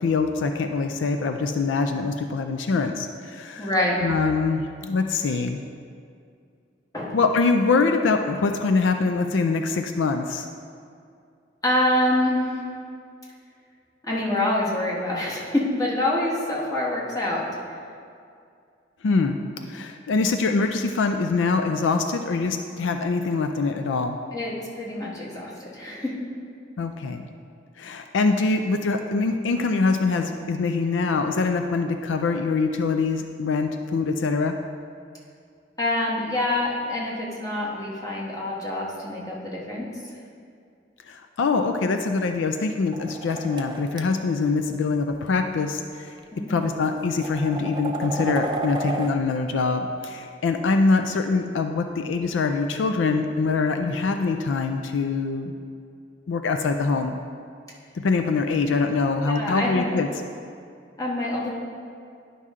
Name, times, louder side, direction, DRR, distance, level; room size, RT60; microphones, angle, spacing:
voice 1, 0.0-3.7 4.0-5.6 7.1-10.5 19.0-19.4 19.7-24.2 26.8-27.2 27.8-34.6 41.1-46.1 46.5-55.5 56.3-57.2 58.0-60.1, left 4 dB, 75° left, 6 dB, 0.4 m, -24 dB
voice 2, 3.6-4.1 6.9-7.1 11.6-12.6 14.0-17.5 24.3-26.2 35.8-39.9 46.3-46.7 59.2-59.8 61.0-61.5, left 1 dB, 20° left, -5 dB, 1.4 m, -26 dB
sound 1, 42.9-44.0 45.1-45.3 46.2-46.3 46.8-49.1, right 2 dB, 25° right, 0.5 m, -31 dB
10.5 x 5.5 x 3.6 m, 2.4 s
head